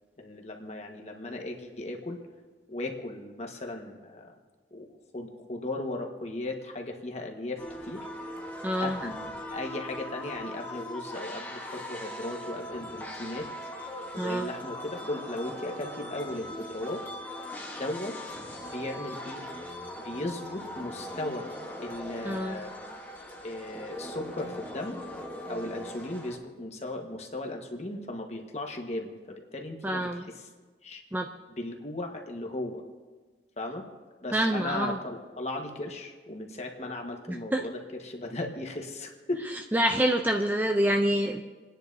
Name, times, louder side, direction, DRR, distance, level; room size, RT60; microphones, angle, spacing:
voice 1, 0.2-2.2 2.7-4.3 4.7-4.9 5.1-8.1 8.8-13.5 14.1-17.0 17.7-18.2 18.6-19.4 20.0-21.5 21.8-22.9 23.4-25.0 25.5-30.5 30.8-31.0 31.6-32.8 33.6-33.9 34.2-39.5, left 2 dB, 35° left, 2 dB, 1.4 m, -36 dB
sound 1, 7.6-26.4, left 1 dB, 10° left, 1.1 m, -40 dB
voice 2, 8.6-9.0 14.2-14.5 22.2-22.6 29.8-30.2 31.1-31.3 34.3-35.0 37.3-37.6 39.7-41.4, right 1 dB, 10° right, 3 dB, 0.4 m, -26 dB
29.5 x 10.0 x 2.7 m, 1.4 s
head